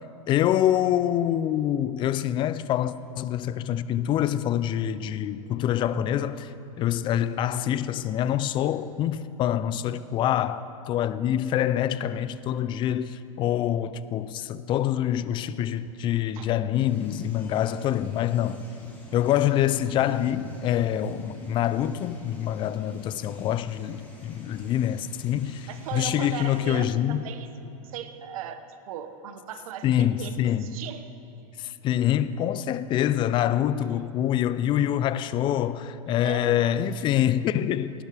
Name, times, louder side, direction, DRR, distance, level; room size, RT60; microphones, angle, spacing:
voice 1, 0.3-6.5 6.8-18.6 19.1-27.2 29.8-30.8 31.6-38.0, left 11 dB, 25° left, 0.4 m, -26 dB
sound 1, 16.7-26.8, left 1 dB, 10° left, 2.7 m, -46 dB
voice 2, 25.7-31.1 36.2-36.6, right 9 dB, 70° right, 1.0 m, -38 dB
18.0 x 11.0 x 3.4 m
supercardioid pair, 130°, 19 cm